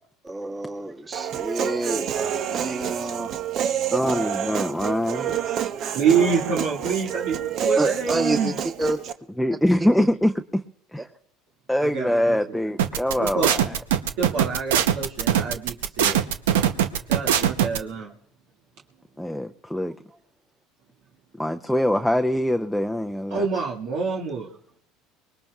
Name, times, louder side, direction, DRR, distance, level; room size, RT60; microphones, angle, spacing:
voice 1, 0.2-2.1 2.5-3.3 7.8-9.0, right 1 dB, 25° right, 0 dB, 1.8 m, -28 dB
Human voice, 1.1-9.1, right 9 dB, 55° right, 0.8 m, -28 dB
voice 2, 3.9-5.4 9.4-10.6 10.9-11.1 11.7-13.8 19.2-20.0 21.4-23.5, left 1 dB, ahead, 5 dB, 0.6 m, -23 dB
voice 3, 5.9-8.5 11.8-12.4 13.2-13.5 14.2-16.2 17.1-18.1 23.3-24.5, right 5 dB, 70° right, -3 dB, 1.9 m, -26 dB
sound 1, 12.8-17.8, right 10 dB, 90° right, 0.8 m, -21 dB
24.0 x 20.5 x 2.4 m, 0.67 s
supercardioid pair, 85°, 0 cm